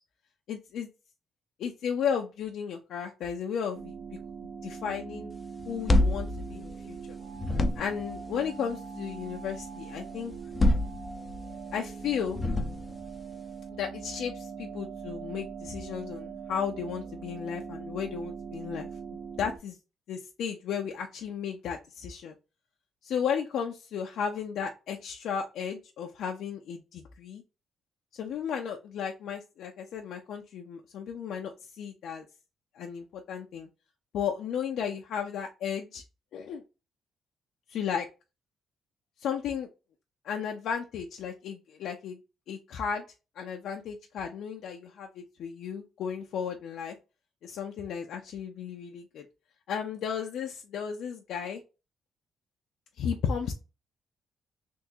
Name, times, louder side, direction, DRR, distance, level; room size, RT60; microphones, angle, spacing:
voice 1, 0.5-0.9 1.6-3.9 4.6-5.3 5.7-7.0 7.8-10.3 11.7-12.4 13.8-18.9 19.4-19.8 20.1-22.3 23.0-27.4 28.1-32.2 32.8-33.7 34.1-36.0 36.3-36.6 37.7-38.1 39.2-39.7 40.2-42.2 42.5-43.0 43.4-47.0 47.4-49.2 49.7-51.6 53.0-53.5, left 7 dB, 75° left, 2 dB, 0.6 m, -34 dB
sound 1, 3.7-19.6, right 5 dB, 60° right, 0.6 m, -42 dB
sound 2, 5.6-7.1 7.3-8.1 10.3-11.5 12.3-13.1, left 1 dB, 30° left, 0.5 m, -26 dB
3.5 x 3.0 x 2.7 m, 0.29 s
cardioid pair, 90°, 0 cm